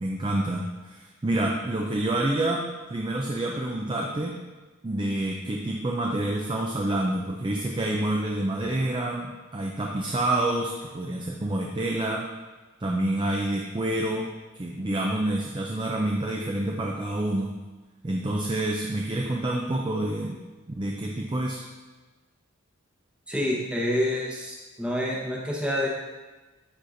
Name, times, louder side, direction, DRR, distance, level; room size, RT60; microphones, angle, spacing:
voice 1, 0.0-4.3 4.8-12.3 12.8-14.3 14.6-17.6 18.0-20.4 20.7-21.6, right 1 dB, 25° right, -1 dB, 0.4 m, -28 dB
voice 2, 23.3-25.9, left 1 dB, 5° right, -3 dB, 0.9 m, -27 dB
9.6 x 4.3 x 2.6 m, 1.2 s
head